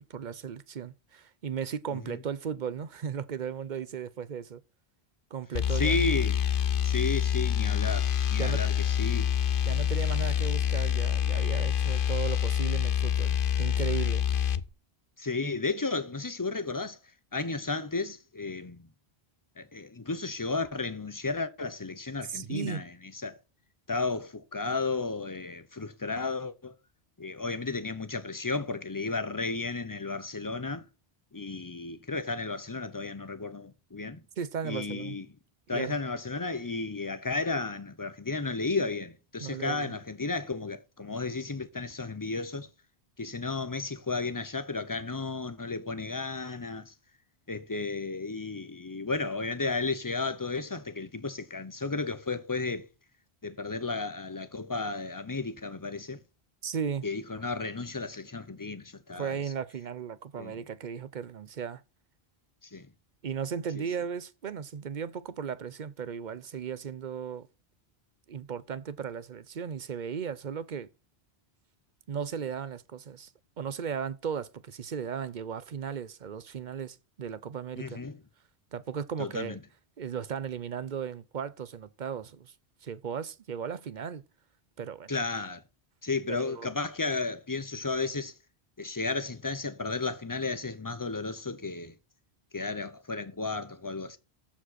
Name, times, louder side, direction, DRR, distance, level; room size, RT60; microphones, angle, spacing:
voice 1, 0.0-4.6 5.3-6.0 8.4-8.6 9.7-14.2 22.3-22.8 34.4-35.2 35.7-35.9 39.4-39.9 56.6-57.0 59.2-61.8 63.2-67.5 68.3-70.9 72.1-73.3 73.6-78.0 78.7-79.6 80.0-82.5 82.8-84.2 84.8-85.2 86.3-86.7, right 7 dB, 50° right, 0.7 m, -36 dB
sound 1, 5.5-14.6, left 9 dB, 60° left, 0.8 m, -27 dB
voice 2, 5.7-6.4 6.8-9.3 15.2-17.0 17.3-18.9 19.6-23.4 23.9-26.7 27.2-30.8 31.3-34.2 34.6-35.3 35.7-42.7 43.2-46.9 47.5-52.9 53.4-56.2 57.0-59.4 60.4-60.6 62.6-62.9 63.7-63.8 77.8-78.2 79.2-79.6 85.1-85.6 86.0-88.3 88.8-91.9 92.5-94.2, left 3 dB, 20° left, 0.7 m, -33 dB
14.5 x 5.1 x 4.1 m
omnidirectional pair, 1.1 m